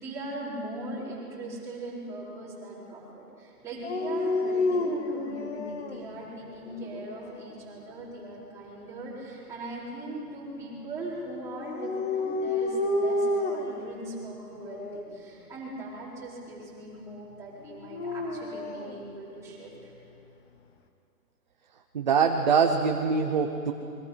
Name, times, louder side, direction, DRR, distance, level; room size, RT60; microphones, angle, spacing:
voice 1, 0.0-19.9, right 1 dB, 5° right, -8 dB, 4.0 m, -40 dB
Dog, 3.8-6.0 6.7-7.4 11.5-13.8 14.6-15.1 17.7-18.9, left 2 dB, 40° left, 1.7 m, -30 dB
voice 2, 21.9-23.7, right 6 dB, 30° right, 3 dB, 0.8 m, -23 dB
29.0 x 23.0 x 5.6 m, 2.7 s
hypercardioid pair, 175°, 48 cm